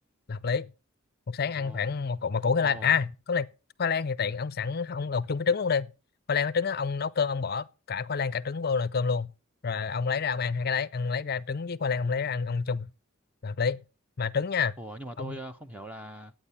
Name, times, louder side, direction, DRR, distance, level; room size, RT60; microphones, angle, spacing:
voice 1, 0.3-0.7 1.3-3.5 3.8-5.9 6.3-9.3 9.6-12.9 13.4-13.8 14.2-14.7 15.2-15.4, left 5 dB, 45° left, 0.5 m, -28 dB
voice 2, 2.6-2.9 14.8-16.3, right 1 dB, 5° right, 0.7 m, -41 dB
12.0 x 9.1 x 5.5 m
head